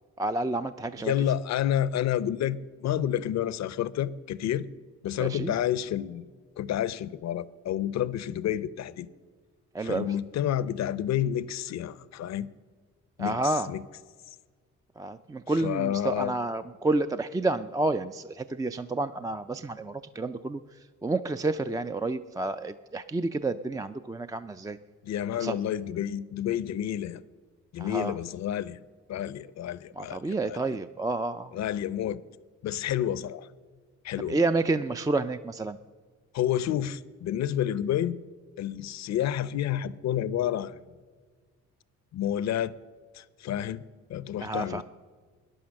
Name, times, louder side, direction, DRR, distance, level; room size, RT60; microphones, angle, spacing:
voice 1, 0.2-1.1 5.2-5.5 9.7-10.1 13.2-13.7 15.0-20.6 21.0-24.8 25.4-25.6 27.8-28.1 30.0-31.5 34.3-35.8 44.4-44.8, right 2 dB, 10° right, 0.4 m, -29 dB
voice 2, 1.0-4.7 5.0-6.2 6.6-9.1 9.8-12.5 13.2-13.8 15.6-16.3 25.0-27.2 27.7-28.8 29.1-30.6 31.5-32.2 32.6-33.5 34.0-34.4 36.3-38.2 38.6-40.8 42.1-42.7 43.1-43.8 44.1-44.8, left 11 dB, 60° left, 0.6 m, -29 dB
14.0 x 10.0 x 6.4 m
cardioid pair, 90°, 30 cm